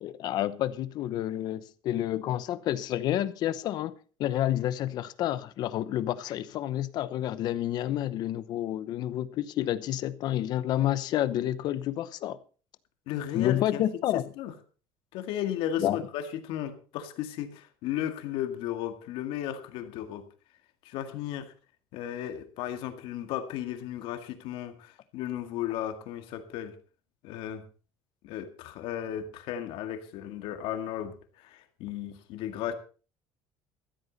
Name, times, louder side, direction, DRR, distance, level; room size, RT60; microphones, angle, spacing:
voice 1, 0.0-3.9 4.2-12.4 13.3-14.2 15.8-16.0, left 12 dB, 45° left, 0.8 m, -29 dB
voice 2, 13.1-13.8 14.1-14.5 15.1-20.2 20.8-21.5 21.9-26.8 27.2-27.6 28.2-32.7, left 11 dB, 65° left, 2.0 m, -35 dB
14.0 x 13.5 x 4.1 m
cardioid pair, 175°, 10 cm